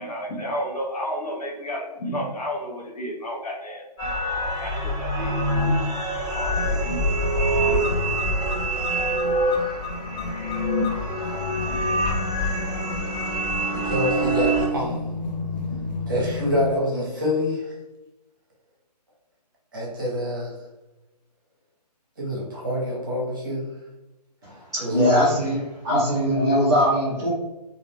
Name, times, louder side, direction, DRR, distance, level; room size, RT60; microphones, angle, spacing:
voice 1, 0.0-3.8 4.6-5.7 6.1-6.6 6.8-7.1, equal, 65° left, -1 dB, 0.9 m, -31 dB
sound 1, 4.0-14.7, right 1 dB, 15° left, 0.8 m, -25 dB
sound 2, 6.5-16.7, left 4 dB, 85° left, 0.5 m, -32 dB
voice 2, 13.7-15.0 16.1-17.7 19.7-20.5 22.2-23.6 24.8-25.2, left 1 dB, 30° right, -3 dB, 0.7 m, -26 dB
voice 3, 24.4-27.3, equal, 5° right, -19 dB, 0.4 m, -22 dB
2.4 x 2.1 x 3.3 m, 1.0 s
hypercardioid pair, 170°, 21 cm